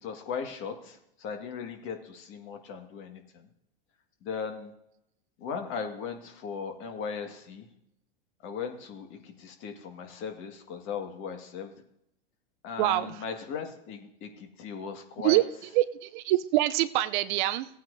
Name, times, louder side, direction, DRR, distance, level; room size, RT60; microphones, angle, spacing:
voice 1, 0.0-3.5 4.2-4.7 5.4-7.7 8.4-11.7 12.6-15.4, left 6 dB, 40° left, 4 dB, 1.9 m, -38 dB
voice 2, 12.8-13.1 15.2-15.4 15.7-17.7, right 16 dB, 50° right, 12 dB, 0.6 m, -25 dB
17.0 x 9.1 x 2.7 m, 0.78 s
hypercardioid pair, 125°, 30 cm